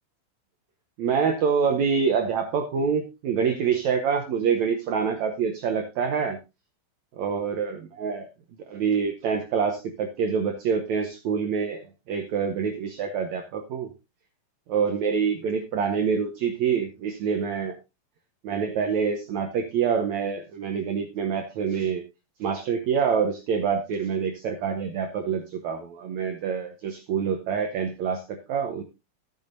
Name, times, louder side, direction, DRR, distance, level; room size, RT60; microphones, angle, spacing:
voice 1, 1.0-6.4 7.2-7.7 8.0-8.3 8.7-11.8 12.1-13.9 14.7-17.7 18.4-22.0 22.4-28.8, right 6 dB, 80° right, 4 dB, 1.6 m, -26 dB
13.5 x 8.7 x 2.6 m, 0.25 s
omnidirectional pair, 4.5 m